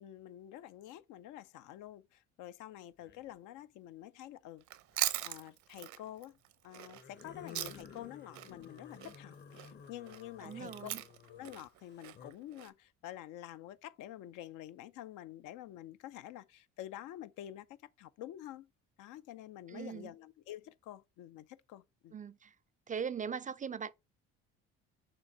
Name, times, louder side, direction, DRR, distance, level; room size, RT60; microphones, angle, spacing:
voice 1, 0.0-4.6 5.2-6.4 6.6-10.9 11.3-17.7 18.0-18.7 19.0-22.2, left 13 dB, 75° left, 0.6 m, -48 dB
sound 1, 3.0-3.3 4.9-5.4 6.9-12.3, left 6 dB, 35° left, 0.8 m, -54 dB
Chewing mastication, 4.6-8.1 8.3-12.7, right 13 dB, 65° right, 0.7 m, -40 dB
voice 2, 10.4-11.0 19.7-20.1 22.1-22.6 22.9-23.9, right 7 dB, 25° right, 0.4 m, -40 dB
6.8 x 2.7 x 5.1 m
supercardioid pair, 80°, 31 cm